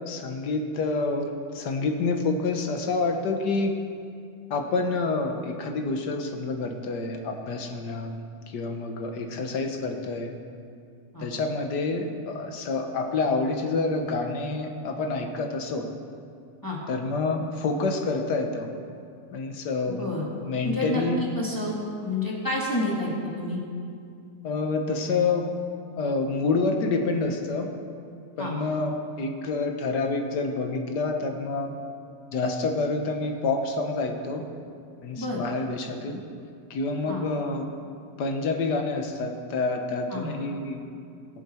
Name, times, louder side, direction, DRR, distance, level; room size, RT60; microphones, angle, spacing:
voice 1, 0.0-3.7 4.5-8.2 8.5-10.3 11.2-15.9 16.9-18.7 19.3-20.1 20.4-21.2 24.4-25.5 26.0-27.7 28.4-31.7 32.3-34.4 35.0-36.2 36.7-37.7 38.2-40.8, left 3 dB, 85° left, 4 dB, 1.7 m, -28 dB
voice 2, 19.9-20.3 20.6-23.6 28.4-28.6 35.2-35.4 37.1-37.2 40.1-40.3, left 1 dB, 10° left, -5 dB, 2.0 m, -29 dB
21.0 x 7.2 x 4.4 m, 2.4 s
omnidirectional pair, 1.8 m